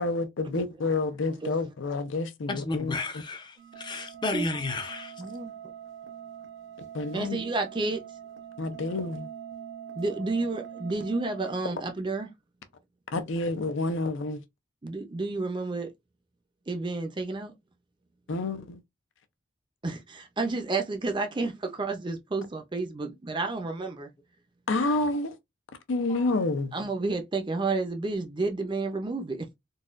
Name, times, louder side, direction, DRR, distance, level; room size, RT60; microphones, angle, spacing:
voice 1, 0.0-3.0 6.9-7.4 8.6-9.3 13.1-14.4 18.3-18.8 24.7-25.3 25.9-26.7, left 2 dB, 75° left, 0.5 m, -29 dB
voice 2, 2.5-5.1 26.1-26.3, left 2 dB, 25° left, 0.6 m, -32 dB
sound 1, 3.6-11.6, right 9 dB, 75° right, 0.7 m, -44 dB
voice 3, 5.2-5.5 7.1-8.0 10.0-12.3 14.8-15.9 16.7-17.5 19.8-24.1 26.7-29.5, right 3 dB, 25° right, 0.5 m, -31 dB
3.9 x 2.3 x 2.4 m
head